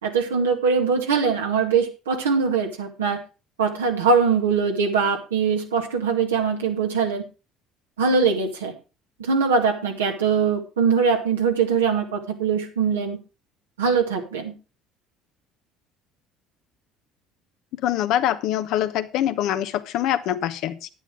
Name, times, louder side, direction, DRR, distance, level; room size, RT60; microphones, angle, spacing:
voice 1, 0.0-3.2 3.6-7.3 8.0-8.7 9.2-13.2 13.8-14.5, right 5 dB, 90° right, 2 dB, 2.1 m, -22 dB
voice 2, 17.8-20.9, left 11 dB, 65° left, 10 dB, 1.0 m, -24 dB
10.0 x 9.8 x 4.8 m, 0.31 s
hypercardioid pair, 65°, 0 cm